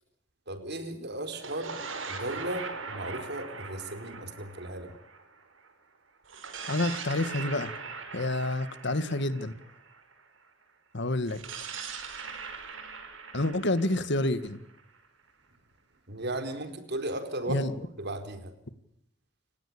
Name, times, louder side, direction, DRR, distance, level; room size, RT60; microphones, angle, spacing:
voice 1, 0.5-1.8 2.1-4.9 16.1-18.5, right 1 dB, 60° right, 8 dB, 4.3 m, -36 dB
sound 1, 1.3-5.7 6.3-10.2 11.2-15.1, right 5 dB, 80° right, 5.7 m, -41 dB
voice 2, 6.7-7.7 8.1-9.5 10.9-11.4 13.3-14.6 17.5-17.7, left 1 dB, 65° left, 12 dB, 2.0 m, -28 dB
30.0 x 17.0 x 8.8 m, 0.76 s
head